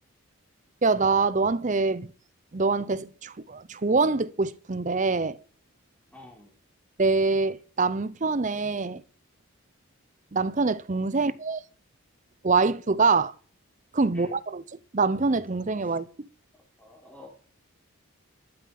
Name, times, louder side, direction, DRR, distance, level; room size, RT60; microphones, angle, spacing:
voice 1, 0.8-2.1 2.5-5.4 7.0-9.0 10.3-11.6 12.4-13.3 13.9-14.6 14.9-16.1, right 4 dB, 35° right, 0.6 m, -24 dB
voice 2, 6.1-6.5 11.1-11.4 14.1-14.4 15.8-16.0 16.8-17.3, left 2 dB, 5° left, 3.3 m, -49 dB
12.5 x 8.3 x 5.9 m
head